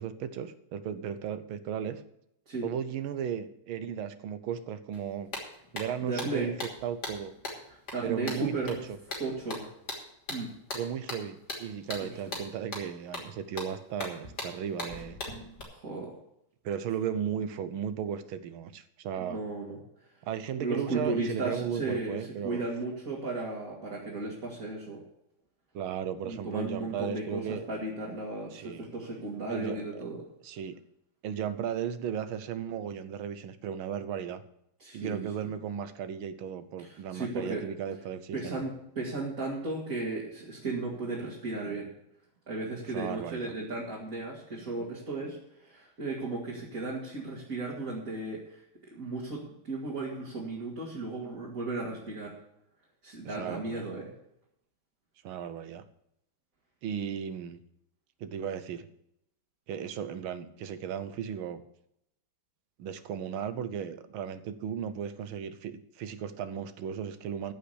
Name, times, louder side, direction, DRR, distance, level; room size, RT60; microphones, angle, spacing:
voice 1, 0.0-2.0 2.6-5.3 5.7-6.6 6.8-7.3 8.0-8.8 10.7-15.2 16.6-19.4 20.2-22.7 25.7-27.6 28.5-28.9 29.5-30.0 30.4-30.8 31.2-34.4 34.9-38.6 42.9-43.5 53.2-53.8 55.2-55.8 56.8-57.6 58.2-58.9 59.7-61.6 62.8-67.5, right 8 dB, 75° right, 12 dB, 1.6 m, -35 dB
sound 1, 4.9-5.0 5.3-15.6, left 2 dB, 50° left, 3.4 m, -40 dB
voice 2, 6.0-6.5 7.9-8.8 9.2-9.7 10.3-10.5 12.0-12.4 15.7-16.1 19.2-19.8 20.6-25.0 26.2-30.2 34.8-35.3 36.8-37.6 38.3-41.9 42.5-52.4 53.0-54.1, right 2 dB, 40° right, -5 dB, 2.8 m, -35 dB
14.5 x 5.7 x 8.1 m, 0.78 s
omnidirectional pair, 2.3 m